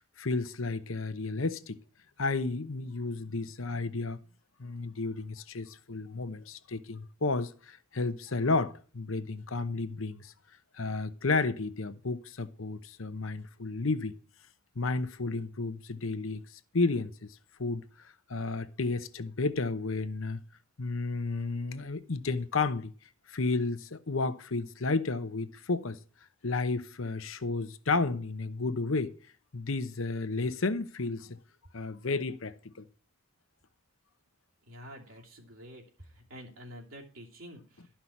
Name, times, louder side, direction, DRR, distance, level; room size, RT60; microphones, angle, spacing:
voice 1, 0.0-1.8 2.2-4.2 4.6-10.3 10.7-14.2 14.8-16.4 16.7-17.8 18.3-20.4 20.8-22.9 23.3-26.0 26.4-29.1 29.5-31.4 31.7-32.8, left 3 dB, 70° left, 0.9 m, -32 dB
voice 2, 34.7-37.9, equal, 75° right, 2.8 m, -48 dB
12.5 x 5.8 x 5.9 m
head